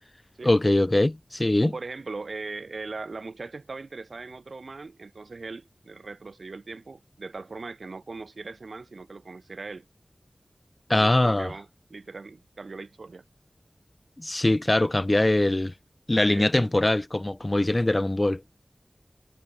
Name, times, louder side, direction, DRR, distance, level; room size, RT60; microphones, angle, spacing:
voice 1, 0.4-1.7 10.9-11.5 14.2-15.7 16.1-18.4, left 1 dB, 35° left, 0.9 m, -22 dB
voice 2, 1.6-9.9 11.0-13.2 16.3-16.7, right 3 dB, 80° right, 4.3 m, -39 dB
cardioid pair, 40°, 0 cm